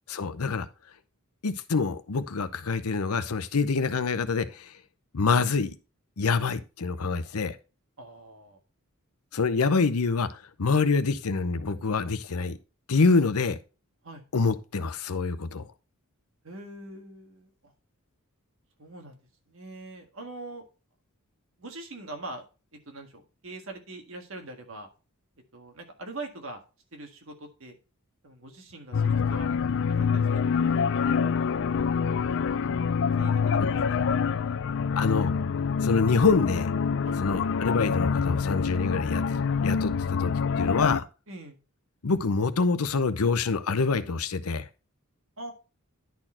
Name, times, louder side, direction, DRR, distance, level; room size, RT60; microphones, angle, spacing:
voice 1, 0.1-0.7 1.4-4.7 5.1-5.8 6.2-7.5 9.3-10.3 10.6-12.6 12.9-13.6 14.3-15.6 33.6-33.8 35.0-35.3 35.8-36.7 37.2-40.3 40.6-41.0 42.0-44.6, left 4 dB, 85° left, 0.7 m, -26 dB
voice 2, 8.0-8.6 14.0-14.2 16.4-17.7 18.8-19.2 19.5-20.6 21.6-22.4 22.7-24.9 25.5-26.6 26.9-27.8 28.2-29.5 29.9-31.3 33.2-34.6 37.0-37.2 41.3-41.6 45.4-45.5, right 2 dB, 65° right, 1.7 m, -43 dB
sound 1, 28.9-41.0, left 6 dB, 55° left, 0.4 m, -26 dB
10.5 x 4.3 x 4.3 m
head